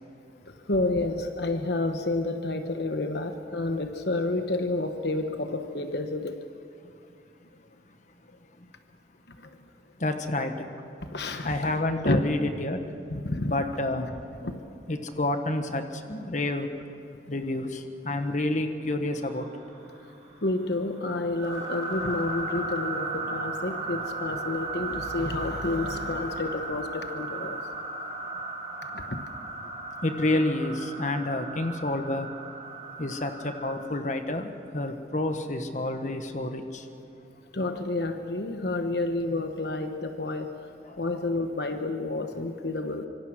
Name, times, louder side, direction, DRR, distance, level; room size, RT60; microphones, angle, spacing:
voice 1, 0.5-6.4 9.3-9.7 11.1-11.5 12.0-12.2 13.1-13.5 14.4-14.6 20.4-27.7 28.8-29.3 29.6-29.7 37.5-40.7 41.0-43.1, left 2 dB, 65° left, 7 dB, 1.1 m, -30 dB
voice 2, 10.0-10.7 11.4-12.8 13.4-14.2 14.9-16.7 17.3-19.5 30.0-32.3 33.0-36.9 40.8-41.0, left 1 dB, 40° left, 7 dB, 1.3 m, -29 dB
sound 1, 19.1-20.5 21.0-33.8, right 3 dB, 25° right, 4.4 m, -36 dB
25.0 x 24.5 x 6.3 m, 2.6 s
head